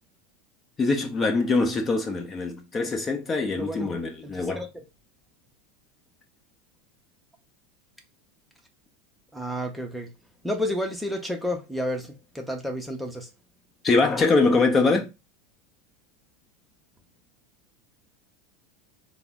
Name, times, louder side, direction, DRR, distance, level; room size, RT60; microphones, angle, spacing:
voice 1, 0.8-4.6 13.8-15.1, left 3 dB, 25° left, 0.8 m, -23 dB
voice 2, 3.5-3.9 4.2-4.8 9.3-10.1 10.4-13.3, equal, 5° right, 0.8 m, -31 dB
3.7 x 2.1 x 3.6 m
hypercardioid pair, 85°, 0 cm